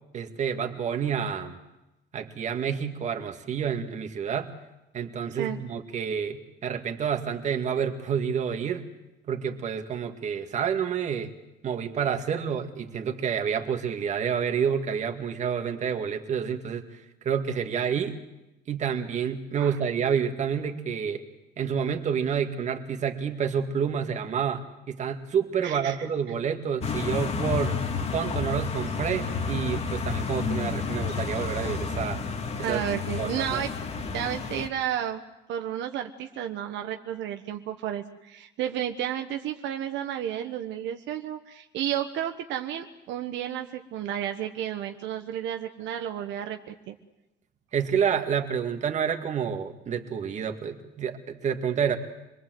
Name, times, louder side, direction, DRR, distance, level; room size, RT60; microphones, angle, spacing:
voice 1, 0.1-1.6 2.1-4.5 4.9-8.8 9.3-11.3 11.6-16.8 17.2-18.2 18.7-21.2 21.6-27.8 28.1-32.2 32.6-32.8 33.2-33.6 47.7-52.0, right 7 dB, 35° right, 5 dB, 2.1 m, -29 dB
voice 2, 5.3-5.6 19.6-19.8 25.6-26.1 32.6-33.7 34.1-35.2 35.5-46.9, right 10 dB, 70° right, 5 dB, 1.3 m, -32 dB
sound 1, 26.8-34.7, left 5 dB, 35° left, 2.0 m, -30 dB
26.0 x 21.5 x 7.8 m, 0.94 s
cardioid pair, 150°, 20 cm